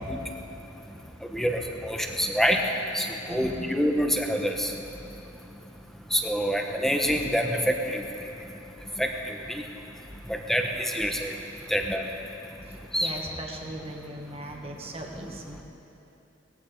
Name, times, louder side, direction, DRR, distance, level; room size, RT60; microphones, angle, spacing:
voice 1, 1.3-2.6 2.9-4.7 6.1-8.0 9.0-9.1 9.5-9.6 10.5-11.3 11.7-12.0 12.9-13.1, equal, ahead, 2 dB, 1.0 m, -26 dB
voice 2, 3.3-3.7 13.0-15.6, right 1 dB, 30° right, 1 dB, 1.5 m, -38 dB
19.5 x 15.0 x 3.9 m, 3.0 s
head